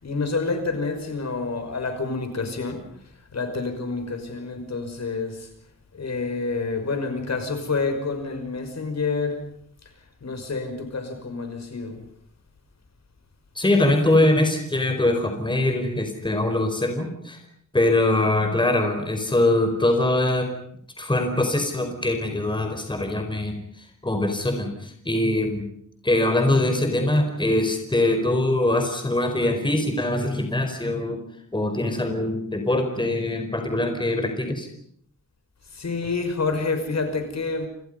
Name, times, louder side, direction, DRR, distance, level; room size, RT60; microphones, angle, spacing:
voice 1, 0.0-2.8 3.3-5.5 5.9-9.5 10.2-12.0 35.7-37.7, left 4 dB, 55° left, 7 dB, 5.9 m, -28 dB
voice 2, 13.6-17.4 17.7-20.5 21.0-23.5 24.0-25.6 26.0-31.2 31.5-34.7, left 1 dB, 15° left, 5 dB, 4.8 m, -22 dB
30.0 x 29.0 x 5.5 m, 0.66 s
wide cardioid pair, 165°, 33 cm